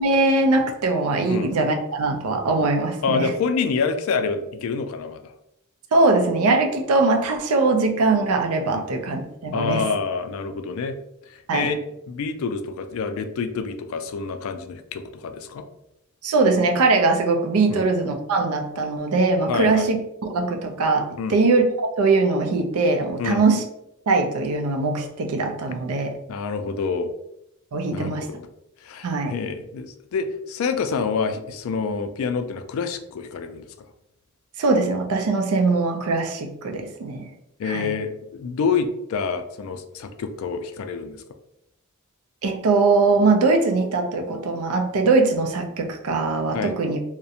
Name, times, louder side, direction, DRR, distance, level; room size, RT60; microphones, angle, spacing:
voice 1, 0.0-3.3 5.9-9.9 11.5-11.7 16.2-20.0 20.3-23.6 24.1-26.1 27.7-28.3 29.0-29.3 34.6-37.3 37.6-37.9 42.4-47.0, right 3 dB, 90° right, 4 dB, 0.4 m, -21 dB
voice 2, 3.0-5.3 8.7-8.8 9.5-10.9 11.3-11.8 12.1-15.6 17.7-17.9 19.5-19.9 21.2-21.4 23.2-23.4 26.3-27.1 27.9-28.4 28.8-33.6 37.6-41.2 46.5-46.7, left 5 dB, 70° left, 9 dB, 0.3 m, -27 dB
2.4 x 2.1 x 2.7 m, 0.81 s
head